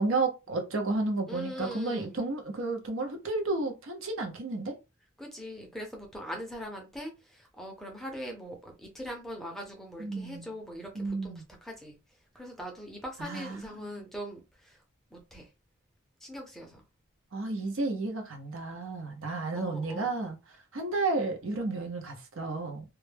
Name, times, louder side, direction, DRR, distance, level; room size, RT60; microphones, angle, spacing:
voice 1, 0.0-4.8 10.0-10.5 10.9-11.4 13.2-14.0 17.3-20.4 20.7-22.8, right 3 dB, 70° right, 0.7 m, -32 dB
voice 2, 1.3-2.1 5.2-11.3 11.6-12.0 12.3-14.8 15.1-15.5 16.2-16.8 19.5-20.1, equal, ahead, 0.5 m, -41 dB
2.2 x 2.1 x 3.3 m
head